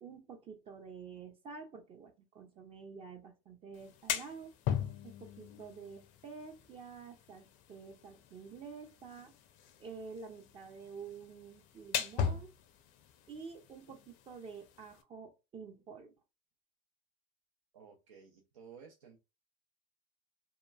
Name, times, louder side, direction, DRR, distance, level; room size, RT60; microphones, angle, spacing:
voice 1, 0.0-4.6 5.0-9.3 9.8-12.5 13.3-16.1, right 5 dB, 35° right, 0.6 m, -49 dB
sound 1, 3.7-15.0, left 8 dB, 50° left, 0.5 m, -41 dB
voice 2, 17.7-19.2, right 6 dB, 85° right, 0.6 m, -55 dB
2.9 x 2.3 x 2.2 m
hypercardioid pair, 100°, 17 cm